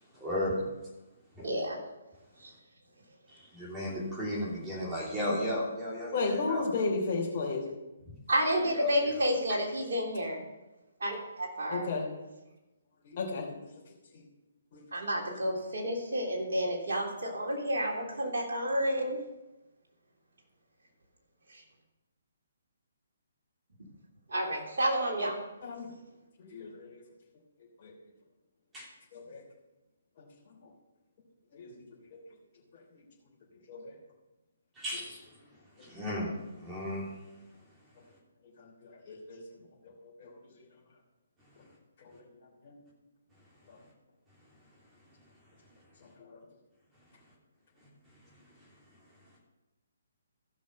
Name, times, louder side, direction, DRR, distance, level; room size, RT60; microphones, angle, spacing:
voice 1, 0.1-0.6 1.4-1.5 3.3-6.6 8.1-8.2 8.5-9.1 28.7-28.9 34.8-35.3 35.8-37.1, left 1 dB, 15° right, -6 dB, 3.2 m, -35 dB
voice 2, 1.4-1.8 2.4-2.5 8.3-10.4 11.0-11.9 14.9-19.2 21.5-21.6 24.3-25.4, equal, 65° right, -2 dB, 3.3 m, -30 dB
voice 3, 6.1-7.6 11.7-12.1 13.0-13.7 14.1-14.2 14.7-14.9 25.6-25.9 26.4-27.0 27.8-27.9 29.1-29.4 30.2-30.3 31.5-31.8 32.1-32.2 32.9-33.0 33.7-34.0 38.6-39.4 40.0-40.3 42.0-42.2 42.6-42.8 43.7-43.8 46.2-46.4, left 3 dB, 40° left, -4 dB, 3.2 m, -34 dB
15.0 x 6.2 x 5.4 m, 1.0 s
figure-of-eight pair, 140°, 0 cm